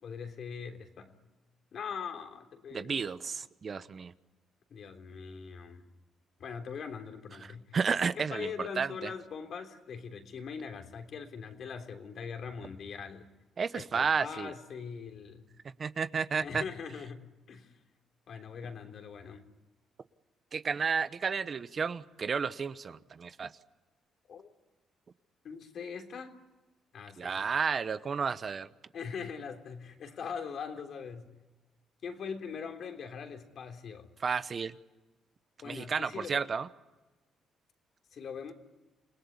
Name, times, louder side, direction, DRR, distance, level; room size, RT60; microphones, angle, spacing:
voice 1, 0.0-1.1 1.7-3.0 4.7-5.8 6.4-7.6 8.1-13.2 13.7-15.4 16.4-17.2 17.5-17.7 18.3-19.4 24.3-24.5 25.4-26.4 26.9-27.5 28.9-31.3 32.0-34.1 35.6-36.4 38.1-38.5, left 6 dB, 60° left, 4 dB, 3.4 m, -41 dB
voice 2, 2.7-4.1 7.4-9.1 13.6-14.5 15.8-16.6 20.5-23.5 27.2-28.7 34.2-34.7 35.6-36.7, right 5 dB, 45° right, 13 dB, 1.0 m, -32 dB
28.5 x 19.0 x 9.8 m, 1.1 s
cardioid pair, 90°, 0 cm